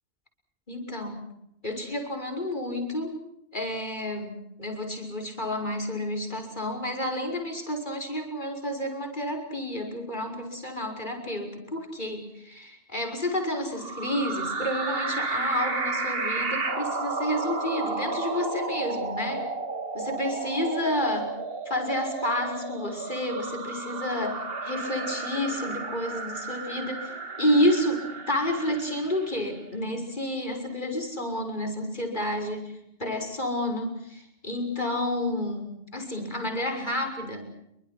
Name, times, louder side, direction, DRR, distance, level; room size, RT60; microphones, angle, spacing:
voice 1, 0.7-1.3 1.6-3.2 3.5-19.4 19.9-21.3 21.6-37.4, left 1 dB, 40° left, 5 dB, 6.5 m, -30 dB
sound 1, 13.7-29.4, right 3 dB, 50° right, 2.2 m, -33 dB
28.0 x 25.0 x 6.1 m, 0.78 s
omnidirectional pair, 1.3 m